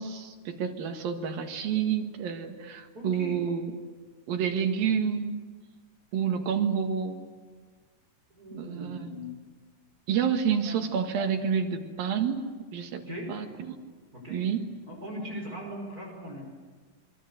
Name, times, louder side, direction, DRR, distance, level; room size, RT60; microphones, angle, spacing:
voice 1, 0.0-3.8 4.3-5.4 6.1-7.2 8.5-9.1 10.1-13.8 14.3-14.6, right 7 dB, 90° right, 5 dB, 3.6 m, -29 dB
voice 2, 2.9-3.4 6.4-6.6 8.3-9.3 10.6-10.8 13.1-13.3 14.1-14.4 14.9-16.4, equal, 25° right, 0 dB, 5.3 m, -39 dB
26.5 x 22.5 x 7.9 m, 1.5 s
omnidirectional pair, 4.0 m